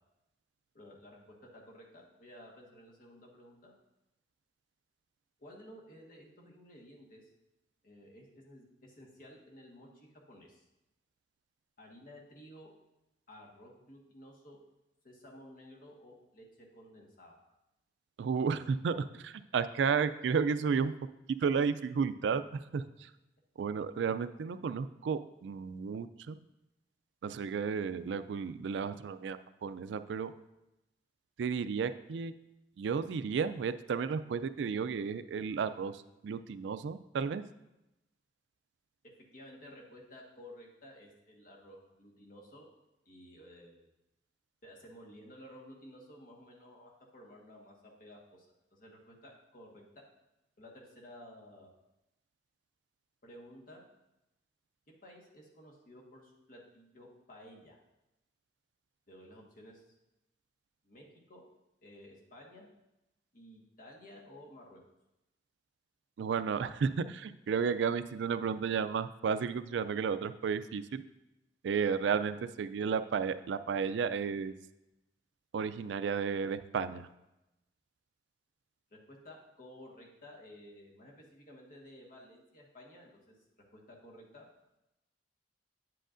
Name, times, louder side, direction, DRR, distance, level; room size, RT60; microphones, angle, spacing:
voice 1, 0.7-3.7 5.4-7.3 7.8-10.6 11.8-12.7 13.3-14.6 15.0-17.4 39.3-42.7 43.0-43.9 44.6-50.0 50.6-51.7 53.2-53.8 55.0-57.8 59.1-59.8 60.8-61.5 61.8-62.7 63.3-64.8 78.9-83.1 83.7-84.5, equal, 50° left, -1 dB, 1.4 m, -54 dB
voice 2, 18.2-20.9 21.4-23.1 23.6-26.4 27.2-30.3 31.4-32.3 32.8-35.9 36.2-37.4 66.2-71.0 71.6-74.5 75.5-77.0, right 6 dB, 70° right, 13 dB, 0.3 m, -33 dB
9.0 x 7.7 x 2.5 m, 0.92 s
head